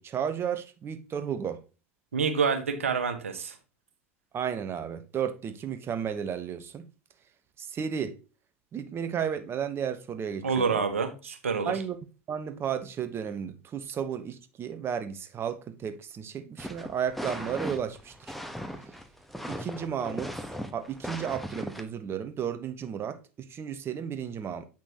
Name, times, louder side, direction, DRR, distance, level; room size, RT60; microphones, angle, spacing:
voice 1, 0.0-1.6 4.3-6.9 7.6-8.2 8.7-10.8 11.7-12.0 12.3-18.3 19.5-20.3 20.7-24.7, right 8 dB, 35° right, 1.1 m, -33 dB
voice 2, 2.1-3.6 10.4-11.7, right 5 dB, 90° right, 1.4 m, -27 dB
sound 1, 16.6-21.8, equal, ahead, 1.2 m, -38 dB
8.2 x 6.0 x 2.9 m
hypercardioid pair, 85°, 7 cm